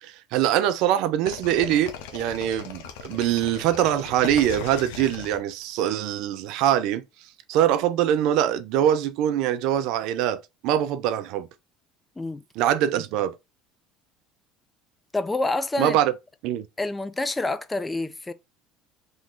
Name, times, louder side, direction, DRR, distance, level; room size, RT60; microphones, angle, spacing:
voice 1, 0.0-7.0 7.5-11.5 12.6-13.4 15.8-16.1 16.4-16.7, right 11 dB, 70° right, 0.4 m, -23 dB
sound 1, 1.3-6.0, left 7 dB, 85° left, 0.7 m, -38 dB
voice 2, 15.1-16.0 16.8-18.3, left 2 dB, 15° left, 0.4 m, -27 dB
3.0 x 2.6 x 3.6 m
supercardioid pair, 100°, 0 cm